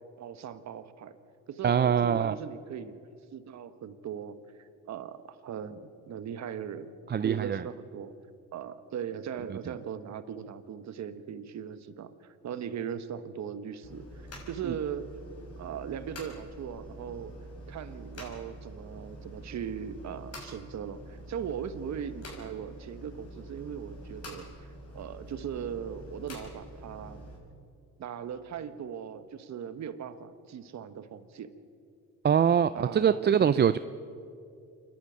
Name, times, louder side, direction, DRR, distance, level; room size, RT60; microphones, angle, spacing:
voice 1, 0.2-1.2 1.5-2.9 3.3-6.9 7.2-8.1 8.5-15.2 15.6-17.3 17.7-27.3 28.0-31.5 32.7-33.8, right 8 dB, 65° right, 11 dB, 1.3 m, -39 dB
voice 2, 1.6-2.3 7.1-7.6 14.7-14.8 32.2-33.8, right 8 dB, 35° right, 13 dB, 0.5 m, -23 dB
sound 1, 13.8-27.4, right 1 dB, 50° left, 6.6 m, -46 dB
27.0 x 11.5 x 9.2 m, 2.4 s
cardioid pair, 90°, 30 cm